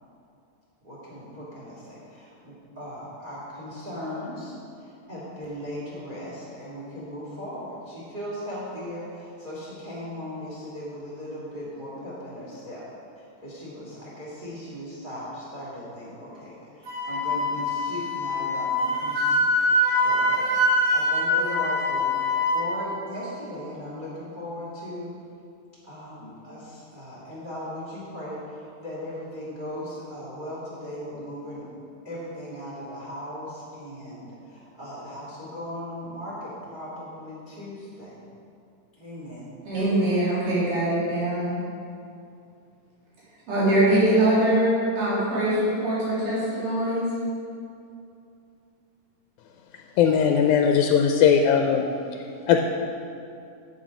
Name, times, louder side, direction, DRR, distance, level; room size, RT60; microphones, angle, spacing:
voice 1, 0.8-12.9 13.2-20.7 20.9-22.2 22.5-25.1 25.8-31.7 32.0-38.2 39.0-39.5, equal, 20° right, -7 dB, 1.6 m, -38 dB
Wind instrument woodwind instrument, 16.9-22.7, left 1 dB, 50° right, 2.2 m, -24 dB
voice 2, 39.6-41.6 43.5-47.1, right 1 dB, 80° right, -10 dB, 4.5 m, -23 dB
voice 3, 50.0-51.9 52.1-52.6, left 7 dB, 80° left, 4 dB, 1.9 m, -19 dB
9.7 x 7.8 x 5.0 m, 2.6 s
omnidirectional pair, 3.7 m